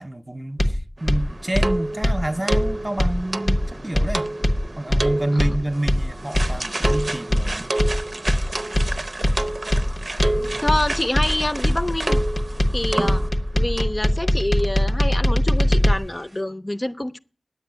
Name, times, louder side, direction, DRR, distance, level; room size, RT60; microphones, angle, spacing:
voice 1, 0.0-4.3 4.8-7.7 10.3-10.8, right 1 dB, 30° right, 0.7 m, -28 dB
sound 1, 0.6-15.9, left 1 dB, 80° left, 1.2 m, -21 dB
sound 2, 1.0-13.5 13.8-14.0 14.6-14.7 14.9-15.0, right 2 dB, 70° right, 0.6 m, -29 dB
voice 2, 10.6-12.2 12.7-13.2 13.5-17.2, left 1 dB, 45° left, 0.7 m, -26 dB
9.9 x 8.1 x 9.3 m
wide cardioid pair, 40°, 0 cm